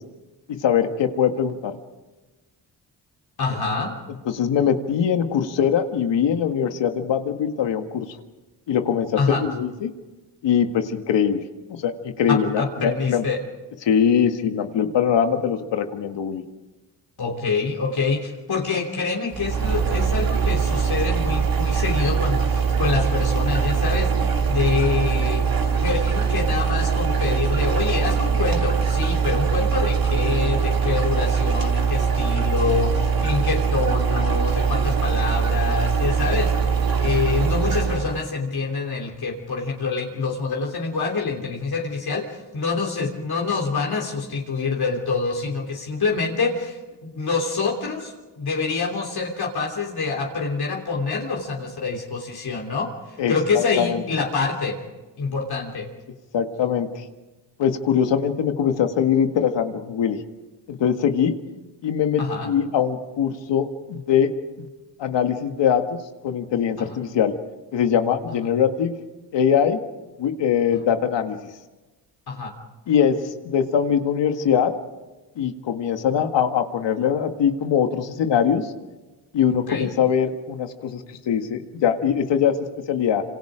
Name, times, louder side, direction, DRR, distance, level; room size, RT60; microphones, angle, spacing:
voice 1, 0.5-1.8 4.3-8.2 8.7-9.9 10.4-11.4 11.7-13.2 13.8-16.4 53.2-54.0 56.3-57.0 57.6-60.2 60.7-61.4 61.8-64.3 64.6-64.7 65.0-67.3 67.7-68.9 69.3-69.8 70.2-71.4 72.9-74.7 75.4-78.7 79.3-83.2, left 8 dB, 85° left, 6 dB, 1.9 m, -22 dB
voice 2, 3.4-3.9 9.2-9.5 12.3-13.4 17.2-25.5 25.8-36.5 37.0-54.8 55.2-55.9 62.2-62.5 66.8-66.9 68.3-68.5 70.7-70.8 72.3-72.5 79.5-79.9, left 4 dB, 60° left, -1 dB, 3.3 m, -26 dB
sound 1, 19.3-38.2, right 6 dB, 55° right, 2.8 m, -22 dB
27.0 x 27.0 x 5.1 m, 1.2 s
cardioid pair, 70°, 42 cm